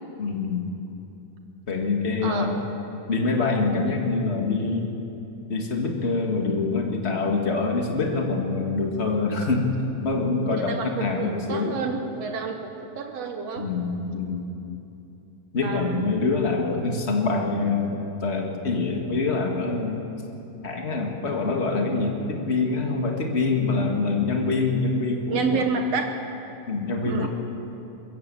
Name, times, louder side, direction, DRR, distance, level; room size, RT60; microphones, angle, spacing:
voice 1, 0.2-0.7 1.7-2.5 3.1-4.9 5.5-9.8 10.0-11.8 13.6-14.4 15.5-20.0 20.6-25.6 26.7-27.3, left 3 dB, 25° left, 1 dB, 1.5 m, -25 dB
voice 2, 2.2-2.5 10.5-13.7 15.6-16.1 25.0-26.2 27.1-27.3, right 5 dB, 65° right, 5 dB, 1.8 m, -29 dB
21.5 x 15.5 x 7.7 m, 2.9 s
omnidirectional pair, 3.9 m